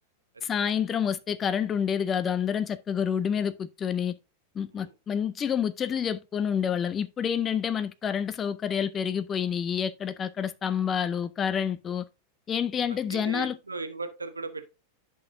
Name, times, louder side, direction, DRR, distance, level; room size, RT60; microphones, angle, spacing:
voice 1, 0.4-4.2 4.6-12.0 12.5-13.6, left 8 dB, 25° left, 0.5 m, -28 dB
voice 2, 13.1-14.7, right 3 dB, 80° right, 0.9 m, -37 dB
10.5 x 5.9 x 2.6 m
figure-of-eight pair, 90°, 0 cm